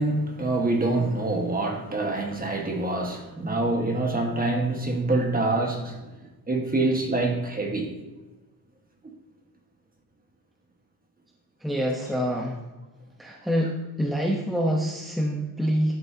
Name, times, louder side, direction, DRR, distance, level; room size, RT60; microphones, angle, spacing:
voice 1, 0.0-6.0 6.5-7.9, right 2 dB, 25° right, 2 dB, 1.7 m, -26 dB
voice 2, 11.6-12.6 13.2-13.7 14.0-16.0, equal, ahead, -1 dB, 1.1 m, -26 dB
12.5 x 10.5 x 2.9 m, 1.1 s
wide cardioid pair, 140°, 38 cm